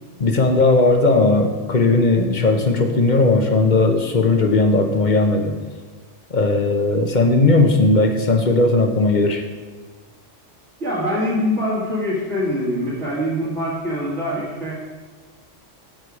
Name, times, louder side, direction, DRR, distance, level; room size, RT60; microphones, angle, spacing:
voice 1, 0.2-5.5 6.3-9.4, left 2 dB, 40° left, 5 dB, 1.2 m, -17 dB
voice 2, 10.8-14.8, equal, 70° right, -9 dB, 2.7 m, -23 dB
15.5 x 5.7 x 4.9 m, 1.4 s
omnidirectional pair, 1.2 m